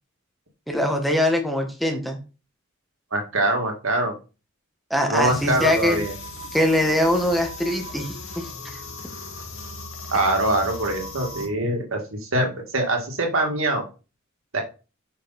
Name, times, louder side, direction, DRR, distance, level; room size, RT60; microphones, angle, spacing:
voice 1, 0.7-2.2 4.9-6.0 6.5-8.8, left 1 dB, ahead, 3 dB, 1.4 m, -23 dB
voice 2, 3.1-4.1 5.1-6.1 10.1-13.8 14.5-14.6, right 1 dB, 75° right, 2 dB, 2.2 m, -23 dB
sound 1, 5.2-11.5, left 2 dB, 75° left, 1.7 m, -37 dB
8.3 x 5.2 x 4.2 m, 0.32 s
head